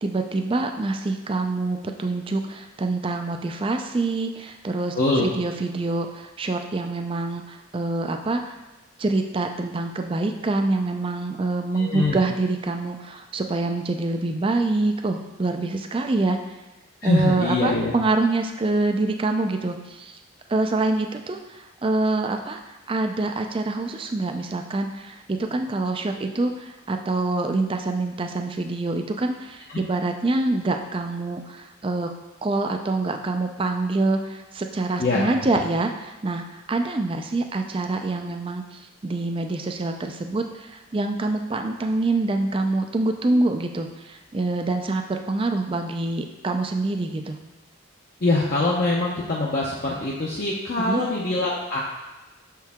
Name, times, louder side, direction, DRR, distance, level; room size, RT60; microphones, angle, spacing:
voice 1, 0.0-4.9 5.2-8.5 9.0-16.4 17.0-20.1 20.5-32.1 32.4-47.4 50.8-51.0, right 2 dB, 25° right, 5 dB, 0.4 m, -26 dB
voice 2, 4.9-5.3 11.8-12.2 17.0-17.9 35.0-35.3 48.2-51.8, left 2 dB, 45° left, -5 dB, 0.7 m, -23 dB
6.7 x 4.6 x 3.5 m, 1.1 s
head